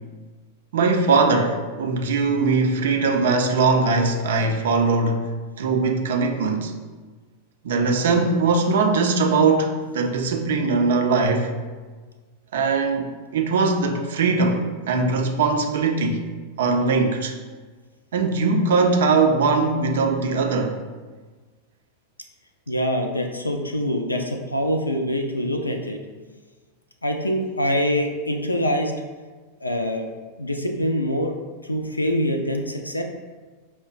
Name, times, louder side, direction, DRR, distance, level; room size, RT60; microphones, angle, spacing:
voice 1, 0.7-5.2 5.6-6.7 7.6-11.5 12.5-16.3 16.6-17.3 18.1-20.8, right 4 dB, 60° right, 4 dB, 0.4 m, -21 dB
voice 2, 22.7-26.0 27.0-28.9 29.6-30.1 30.4-31.4 31.6-33.0, equal, 85° left, 4 dB, 0.3 m, -24 dB
5.5 x 2.1 x 2.5 m, 1.4 s
figure-of-eight pair, 90°, 0 cm